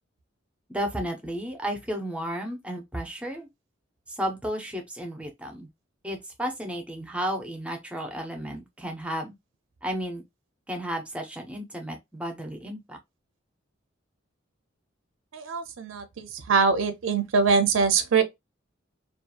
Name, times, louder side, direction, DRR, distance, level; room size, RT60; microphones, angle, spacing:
voice 1, 0.7-3.5 4.1-5.7 6.0-9.3 9.8-10.2 10.7-13.0, equal, 5° right, 0.5 m, -33 dB
voice 2, 15.3-18.2, right 5 dB, 80° right, 0.5 m, -23 dB
2.7 x 2.3 x 2.3 m
head